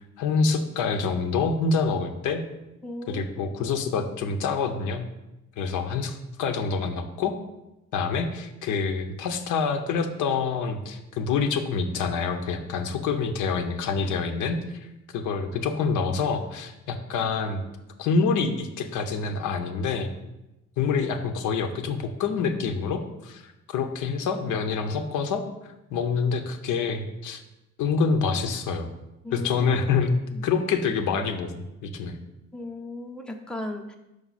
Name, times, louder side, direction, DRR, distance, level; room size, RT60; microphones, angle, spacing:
voice 1, 0.2-2.4 3.1-5.0 5.6-7.3 7.9-14.6 15.1-17.6 18.0-20.1 20.8-27.4 27.8-28.9 29.3-30.1 30.4-32.2, left 5 dB, 85° left, 6 dB, 0.7 m, -26 dB
voice 2, 2.8-3.6 29.2-30.4 32.5-34.0, left 1 dB, 5° left, 3 dB, 0.7 m, -37 dB
5.3 x 4.7 x 4.1 m, 0.95 s
cardioid pair, 90°, 30 cm